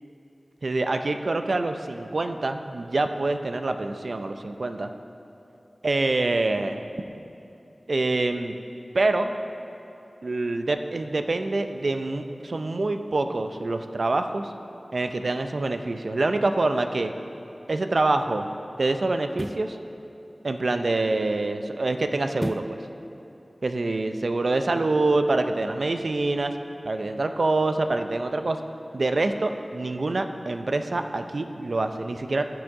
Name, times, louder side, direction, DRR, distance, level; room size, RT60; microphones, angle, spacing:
voice 1, 0.6-4.9 5.8-6.8 7.9-8.5 8.9-9.4 10.2-14.5 14.9-17.1 17.7-18.5 18.8-19.8 20.4-22.8 23.6-26.5 26.9-28.6 28.9-32.4, right 2 dB, 75° right, 7 dB, 0.5 m, -26 dB
sound 1, 17.4-17.6 19.3-19.7 22.4-22.8 23.3-23.4, equal, ahead, 0.3 m, -33 dB
16.0 x 6.2 x 3.7 m, 2.8 s
wide cardioid pair, 45°, 0 cm